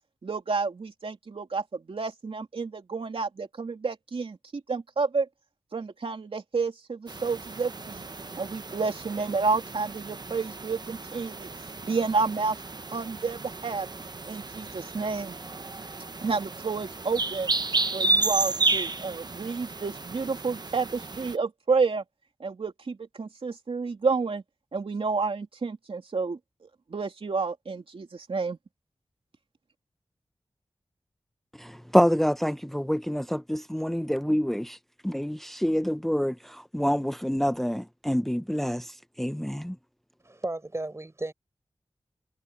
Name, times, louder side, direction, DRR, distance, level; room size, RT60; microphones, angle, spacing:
voice 1, 0.2-5.3 5.7-8.1 8.4-11.5 11.8-12.6 12.9-13.9 14.3-15.4 16.2-17.5 17.9-22.0 22.4-24.4 24.7-26.4 26.9-28.6, right 4 dB, 80° right, 3.0 m, -30 dB
sound 1, 7.1-21.3, right 3 dB, 50° right, 1.0 m, -32 dB
voice 2, 31.6-34.8 35.0-39.7, equal, 5° left, 0.8 m, -27 dB
voice 3, 40.2-41.3, right 2 dB, 30° right, 5.0 m, -34 dB
wide cardioid pair, 60°, 9 cm